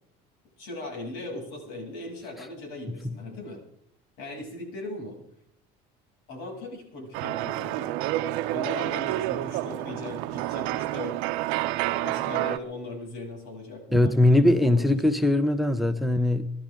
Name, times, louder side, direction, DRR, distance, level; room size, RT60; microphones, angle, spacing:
voice 1, 0.6-3.6 4.2-5.2 6.3-7.9 8.5-11.2 11.8-15.2, left 2 dB, 75° left, 0 dB, 7.7 m, -39 dB
sound 1, 7.1-12.6, right 15 dB, 80° right, 0.9 m, -29 dB
voice 2, 13.9-16.5, left 1 dB, ahead, 11 dB, 1.0 m, -21 dB
28.0 x 12.0 x 3.8 m, 0.71 s
supercardioid pair, 100°, 19 cm